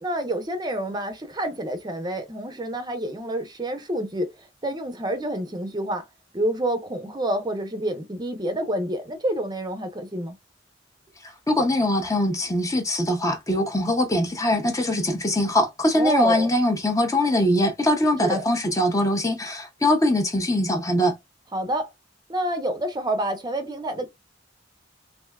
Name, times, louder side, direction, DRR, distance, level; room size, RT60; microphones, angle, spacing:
voice 1, 0.0-4.3 4.6-6.0 6.3-10.4 15.9-16.5 18.2-18.4 21.5-21.9 22.3-24.1, right 1 dB, 25° right, 0.6 m, -28 dB
voice 2, 11.2-21.2, left 1 dB, 20° left, 0.6 m, -22 dB
3.3 x 2.7 x 2.2 m
head